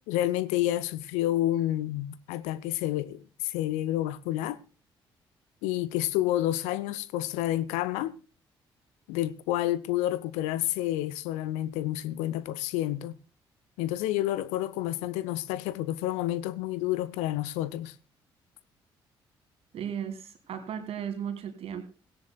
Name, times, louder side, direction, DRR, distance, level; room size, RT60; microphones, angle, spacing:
voice 1, 0.1-4.6 5.6-8.1 9.1-13.2 13.8-17.9, left 14 dB, 65° left, 0.6 m, -29 dB
voice 2, 19.7-21.8, right 8 dB, 50° right, 2.4 m, -35 dB
18.0 x 17.0 x 2.2 m
figure-of-eight pair, 45°, 13 cm